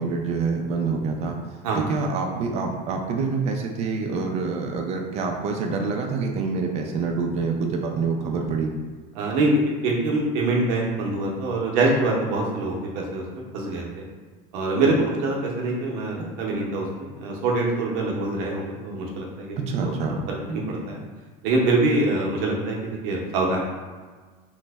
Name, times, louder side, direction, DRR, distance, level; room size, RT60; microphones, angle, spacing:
voice 1, 0.0-1.4 1.7-8.7 19.6-20.2, right 4 dB, 35° right, 2 dB, 0.4 m, -26 dB
voice 2, 9.1-13.2 13.5-14.0 14.5-19.6 19.8-19.9 20.3-21.0 21.4-23.6, right 2 dB, 70° right, -1 dB, 0.8 m, -24 dB
3.1 x 2.1 x 3.4 m, 1.4 s
cardioid pair, 155°, 19 cm